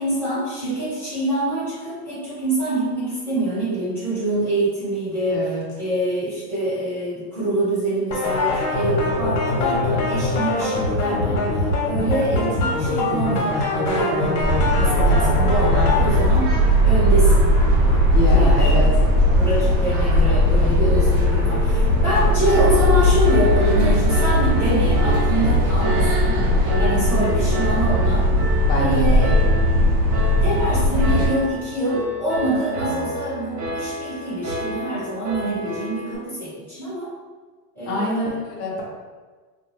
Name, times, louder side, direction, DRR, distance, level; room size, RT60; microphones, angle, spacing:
voice 1, 0.0-17.5 17.8-18.8 19.3-26.4 26.8-28.3 28.7-29.3 30.4-37.1 37.7-38.3, right 1 dB, 5° left, -12 dB, 1.3 m, -25 dB
voice 2, 5.3-5.6 18.1-18.9 27.1-27.4 28.7-29.3 37.9-38.8, equal, 50° left, -4 dB, 0.9 m, -25 dB
sound 1, 8.1-16.1, left 2 dB, 85° left, 1.1 m, -23 dB
sound 2, 14.4-31.3, left 1 dB, 35° right, 1.1 m, -18 dB
Piano, 22.4-36.2, right 3 dB, 65° right, 0.9 m, -30 dB
2.5 x 2.4 x 3.1 m, 1.4 s
supercardioid pair, 145°, 50 cm